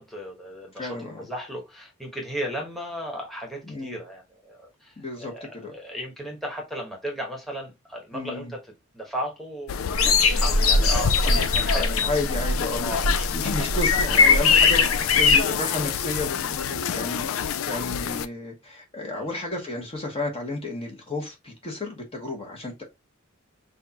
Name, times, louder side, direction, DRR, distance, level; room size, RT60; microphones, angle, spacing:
voice 1, 0.0-8.6 8.9-11.9 12.8-13.1 13.4-13.7 14.8-15.1 19.0-19.3, equal, ahead, 1.3 m, -35 dB
voice 2, 0.8-1.3 3.7-4.0 5.0-5.7 8.1-8.5 11.2-22.8, left 2 dB, 30° left, 1.3 m, -32 dB
sound 1, 9.7-18.3, left 8 dB, 70° left, 0.4 m, -29 dB
sound 2, 9.9-15.4, left 4 dB, 85° left, 0.8 m, -20 dB
6.3 x 2.5 x 2.9 m
head